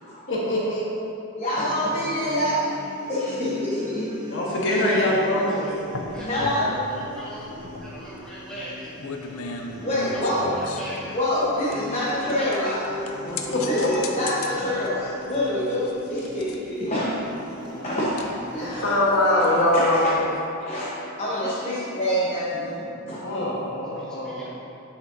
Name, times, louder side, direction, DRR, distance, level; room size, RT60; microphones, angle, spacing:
voice 1, 0.3-0.8 4.3-5.8 13.3-13.9 15.4-15.5 18.6-20.2 23.2-24.4, left 1 dB, 55° left, -5 dB, 1.2 m, -23 dB
voice 2, 1.4-2.7 3.1-4.1 6.3-6.8 9.8-10.6 11.1-12.9 13.6-19.5 19.7-20.1 20.7-20.9 21.2-23.2, left 1 dB, 30° left, -9 dB, 0.9 m, -26 dB
sound 1, 1.5-19.0, equal, 20° right, 0.7 m, -41 dB
voice 3, 4.5-4.9 5.4-5.7 6.1-6.6 6.9-7.5 7.8-11.2 11.7-12.8 23.9-24.5, equal, 5° left, -10 dB, 1.2 m, -41 dB
sound 2, 5.7-20.1, left 4 dB, 70° left, 0.5 m, -39 dB
7.7 x 6.5 x 2.6 m, 2.9 s
head